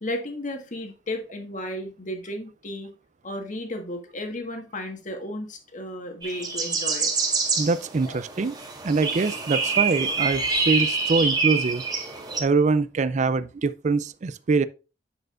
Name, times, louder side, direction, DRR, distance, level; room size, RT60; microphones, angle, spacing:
voice 1, 0.0-2.9 3.2-7.1 8.0-8.2, left 1 dB, 45° left, 1.6 m, -34 dB
sound 1, 6.2-12.4, right 4 dB, 20° right, 1.5 m, -26 dB
voice 2, 7.6-8.6 8.8-11.8 12.4-14.7, right 4 dB, 40° right, 0.4 m, -24 dB
9.0 x 6.5 x 2.5 m
head